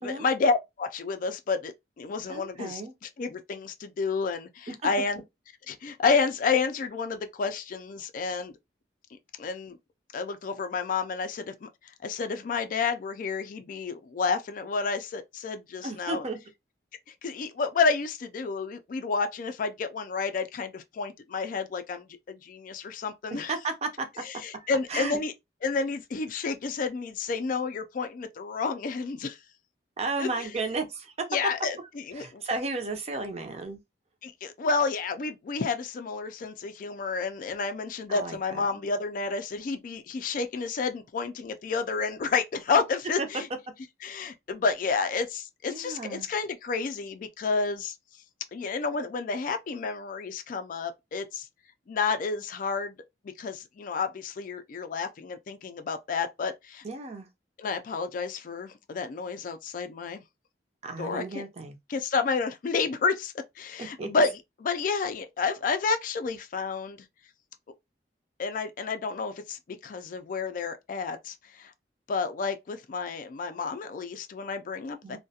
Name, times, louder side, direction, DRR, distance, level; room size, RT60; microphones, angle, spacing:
voice 1, 0.0-5.2 5.7-8.5 9.4-9.8 10.1-16.2 17.2-23.5 24.2-25.3 25.6-29.4 30.2-30.5 31.3-32.4 34.2-43.5 44.0-48.0 48.5-51.5 51.9-52.9 53.4-56.8 57.6-60.2 61.0-61.4 61.9-67.0 68.4-71.7 72.1-75.2, left 4 dB, 50° left, 0.3 m, -30 dB
voice 2, 2.3-2.9 4.8-4.9 15.8-16.4 23.5-24.1 24.5-25.2 30.0-31.3 32.2-33.8 38.1-38.6 43.2-43.3 45.7-46.3 56.8-57.3 60.8-61.8 63.8-64.1 75.0-75.2, right 3 dB, 35° right, 0.5 m, -33 dB
2.3 x 2.1 x 2.7 m
head